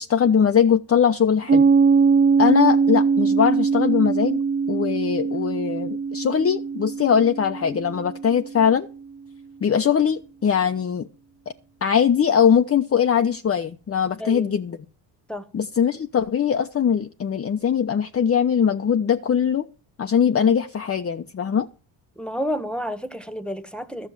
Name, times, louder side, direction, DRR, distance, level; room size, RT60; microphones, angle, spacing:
voice 1, 0.0-1.7 2.4-4.4 4.7-8.9 9.6-11.1 11.8-14.8 15.5-19.6 20.0-21.7, left 7 dB, 30° left, 0.9 m, -21 dB
Piano, 1.5-8.7, right 5 dB, 25° right, 0.5 m, -21 dB
voice 2, 14.2-14.5 15.3-15.5 22.2-24.1, equal, ahead, 1.6 m, -30 dB
12.5 x 6.7 x 7.6 m
supercardioid pair, 70°, 48 cm